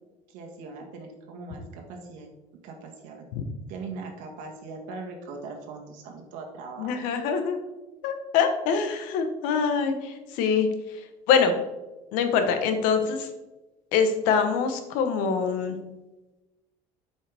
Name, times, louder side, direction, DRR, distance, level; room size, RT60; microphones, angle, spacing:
voice 1, 0.3-2.3 2.6-3.2 3.7-7.1, right 3 dB, 80° right, 2 dB, 1.6 m, -40 dB
voice 2, 6.8-7.6 8.0-11.5 12.1-13.3 13.9-15.8, left 6 dB, 85° left, 7 dB, 1.1 m, -24 dB
7.7 x 5.4 x 3.5 m, 1.1 s
cardioid pair, 170°, 13 cm